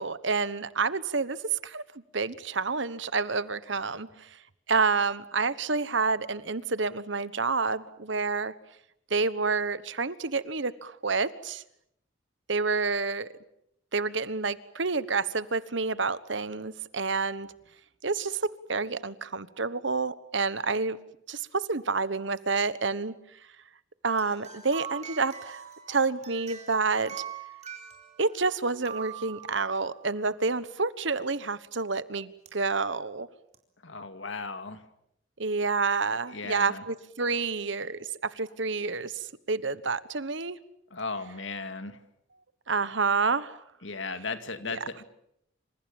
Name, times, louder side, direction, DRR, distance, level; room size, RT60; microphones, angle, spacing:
voice 1, 0.0-1.8 2.1-4.4 4.7-8.5 9.1-11.6 12.5-13.3 13.9-17.5 18.0-18.4 18.7-21.0 21.3-23.1 24.0-25.6 25.9-27.2 28.2-33.3 35.4-40.6 42.7-43.6 44.6-44.8, right 4 dB, 65° right, 15 dB, 1.3 m, -29 dB
sound 1, 24.1-30.1 32.5-32.6 33.5-33.6, right 8 dB, 35° right, 4.3 m, -43 dB
voice 2, 33.8-34.8 36.3-36.8 40.9-42.0 43.8-45.0, left 4 dB, 70° left, 9 dB, 2.4 m, -36 dB
28.0 x 27.0 x 7.2 m, 0.75 s
head